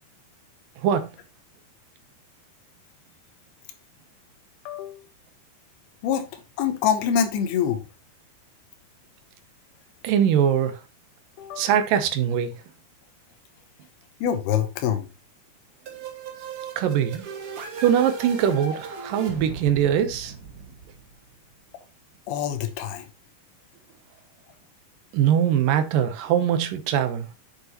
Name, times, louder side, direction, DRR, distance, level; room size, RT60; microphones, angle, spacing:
voice 1, 0.8-1.1 10.0-10.8 11.6-12.5 16.8-17.3 17.8-20.3 25.1-27.3, right 9 dB, 75° right, 2.3 m, -22 dB
voice 2, 4.7-5.1 6.0-7.8 11.4-11.7 14.2-15.1 22.3-23.1, left 8 dB, 90° left, 3.0 m, -25 dB
sound 1, 15.9-21.5, right 5 dB, 60° right, 1.5 m, -37 dB
8.1 x 6.6 x 2.9 m
omnidirectional pair, 4.4 m